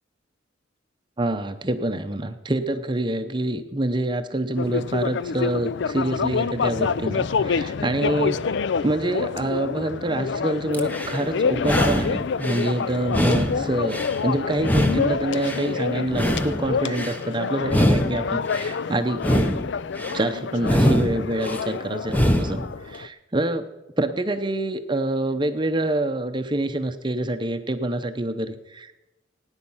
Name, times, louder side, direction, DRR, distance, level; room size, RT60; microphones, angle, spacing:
voice 1, 1.2-8.6 8.8-19.5 20.1-23.6 24.0-28.9, right 1 dB, 25° right, 8 dB, 0.7 m, -26 dB
sound 1, 4.6-23.1, left 5 dB, 60° left, 0.4 m, -27 dB
sound 2, 10.7-11.2 11.6-12.7 13.1-14.2 14.6-15.7 16.1-17.2 17.6-18.7 19.1-20.2 20.6-21.6 22.1-22.7, equal, 10° left, 0.8 m, -23 dB
18.0 x 9.8 x 5.6 m, 1.0 s
head